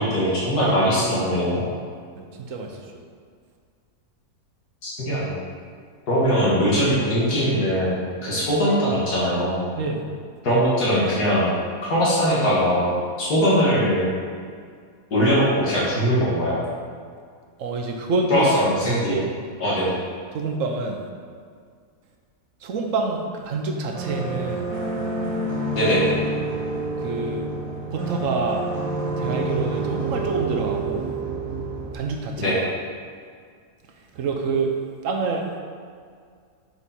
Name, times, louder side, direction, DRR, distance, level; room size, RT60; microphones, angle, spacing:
voice 1, 0.0-1.6 4.8-5.3 6.1-7.9 8.2-9.6 10.4-11.5 11.9-12.9 13.2-14.1 15.1-16.6 18.3-19.2 19.6-19.9 25.8-26.1 32.4-32.5, equal, 80° left, -8 dB, 2.1 m, -21 dB
voice 2, 2.2-2.8 9.8-10.1 17.6-18.5 18.8-19.3 20.3-21.0 22.6-24.7 27.0-27.4 27.9-28.6 29.2-31.0 31.9-32.6 34.1-34.7 35.0-35.5, right 3 dB, 60° right, 2 dB, 1.0 m, -27 dB
sound 1, 23.9-31.9, right 2 dB, 80° right, 1.6 m, -28 dB
6.7 x 4.7 x 4.2 m, 2.1 s
omnidirectional pair, 1.7 m